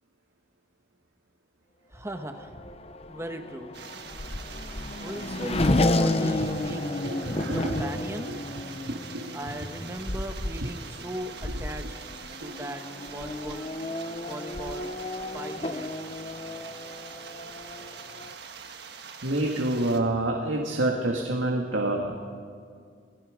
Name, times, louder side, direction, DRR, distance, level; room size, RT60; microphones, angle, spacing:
voice 1, 1.9-2.6 3.1-3.7 5.0-6.8 7.5-8.3 9.3-11.9 12.4-13.7 14.2-14.9 15.3-15.9, right 1 dB, 15° right, 5 dB, 1.4 m, -38 dB
Race car auto racing / Accelerating revving vroom, 2.1-18.4, left 2 dB, 30° left, 0.8 m, -31 dB
sound 1, 3.7-20.0, right 6 dB, 55° right, 1.5 m, -44 dB
voice 2, 7.0-7.9 8.3-8.4 8.9-9.2 12.4-12.5 19.2-22.3, right 1 dB, 85° right, 0 dB, 2.0 m, -28 dB
28.5 x 19.5 x 5.2 m, 2.2 s
head